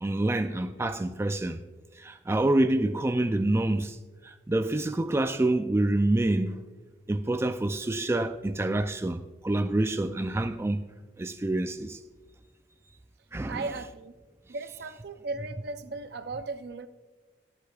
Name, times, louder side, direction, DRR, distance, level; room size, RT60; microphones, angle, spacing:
voice 1, 0.0-1.6 2.0-4.0 4.2-6.6 7.1-10.8 11.2-12.0 13.3-13.6, right 1 dB, 15° right, 0.3 m, -27 dB
voice 2, 13.5-14.1 14.5-16.9, right 3 dB, 65° right, 0.6 m, -36 dB
23.5 x 8.4 x 2.4 m
head